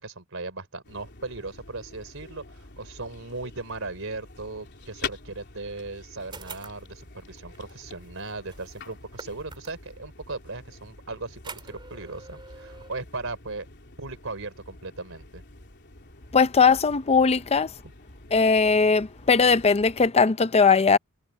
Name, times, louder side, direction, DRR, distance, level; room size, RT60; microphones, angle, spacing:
voice 1, 0.0-13.7 14.0-15.4, right 3 dB, 70° right, 4.4 m, -37 dB
sound 1, 0.8-20.1, left 4 dB, 55° left, 3.2 m, -45 dB
sound 2, 6.3-10.0 11.3-12.9, right 4 dB, 25° right, 3.0 m, -46 dB
voice 2, 16.3-17.7 18.3-21.0, left 5 dB, 30° left, 0.5 m, -19 dB
head